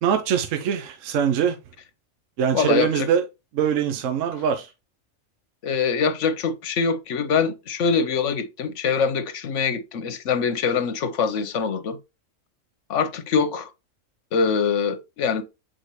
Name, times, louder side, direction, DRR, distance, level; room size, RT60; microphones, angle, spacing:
voice 1, 0.0-1.6 2.4-3.2 3.5-4.7, right 8 dB, 75° right, 1.0 m, -23 dB
voice 2, 2.5-3.1 5.6-12.0 12.9-13.7 14.3-15.4, left 6 dB, 70° left, 1.1 m, -24 dB
7.9 x 4.2 x 3.0 m
omnidirectional pair, 1.3 m